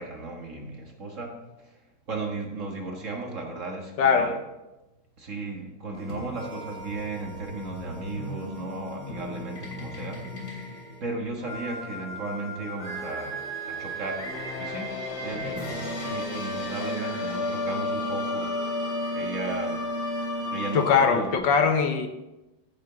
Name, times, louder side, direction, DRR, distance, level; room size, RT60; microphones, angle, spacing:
voice 1, 0.0-1.7 2.1-4.3 5.2-10.7 11.0-14.3 14.6-15.7 16.0-19.8 20.5-21.4, right 2 dB, 45° right, 1 dB, 1.8 m, -35 dB
voice 2, 4.0-4.4 20.7-22.1, left 6 dB, 75° left, 6 dB, 1.7 m, -21 dB
sound 1, 5.9-21.4, left 1 dB, 45° left, 3.4 m, -33 dB
15.5 x 7.1 x 3.9 m, 0.99 s
omnidirectional pair, 2.0 m